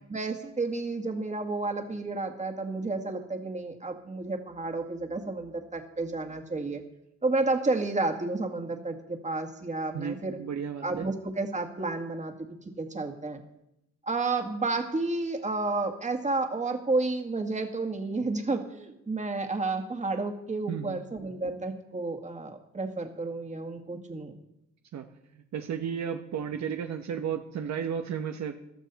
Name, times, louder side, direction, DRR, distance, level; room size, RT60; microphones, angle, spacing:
voice 1, 0.1-6.8 7.2-10.4 10.8-12.3 12.8-13.4 14.0-24.4, right 3 dB, 25° right, 5 dB, 2.0 m, -31 dB
voice 2, 9.9-11.1 20.7-21.0 24.9-25.1 25.5-28.6, right 7 dB, 65° right, 6 dB, 1.1 m, -33 dB
15.0 x 12.5 x 4.1 m, 0.84 s
cardioid pair, 90°, 30 cm